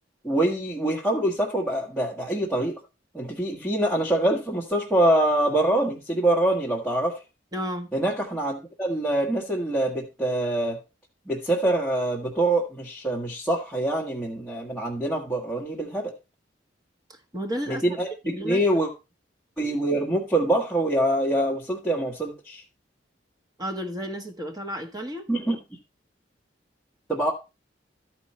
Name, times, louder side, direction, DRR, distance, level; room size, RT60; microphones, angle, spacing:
voice 1, 0.2-2.8 3.1-7.2 7.9-10.8 11.3-16.1 17.7-18.9 19.6-22.6 25.3-25.6 27.1-27.3, right 1 dB, ahead, 1.3 m, -25 dB
voice 2, 7.5-7.9 17.3-17.9 18.2-18.6 23.6-25.2, equal, 20° right, 1.3 m, -32 dB
13.0 x 4.6 x 4.2 m
head